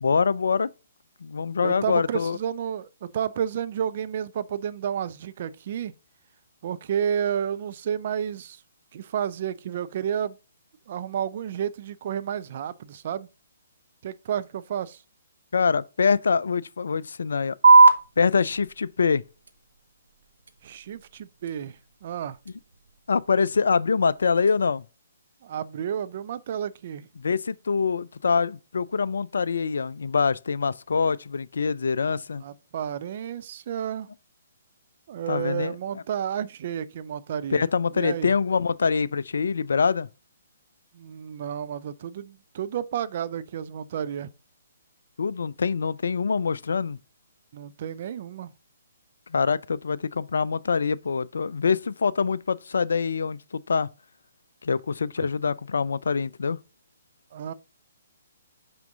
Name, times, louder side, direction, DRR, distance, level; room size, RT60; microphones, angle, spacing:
voice 1, 0.0-0.7 1.2-2.4 15.5-17.6 18.2-19.2 23.1-24.8 27.2-32.4 35.3-36.0 37.5-40.1 45.2-47.0 49.3-53.9 54.6-56.6, left 5 dB, 60° left, 0.3 m, -25 dB
voice 2, 1.6-5.9 6.6-8.6 8.9-10.4 10.9-13.3 14.0-15.0 20.6-22.4 25.4-27.1 32.4-34.1 35.1-37.7 37.9-38.3 40.9-44.3 47.5-48.5 55.2-55.3 57.3-57.5, right 9 dB, 45° right, 0.4 m, -31 dB
sound 1, 17.6-24.6, right 3 dB, 65° right, 0.8 m, -23 dB
5.9 x 5.2 x 3.7 m
figure-of-eight pair, 130°, 0 cm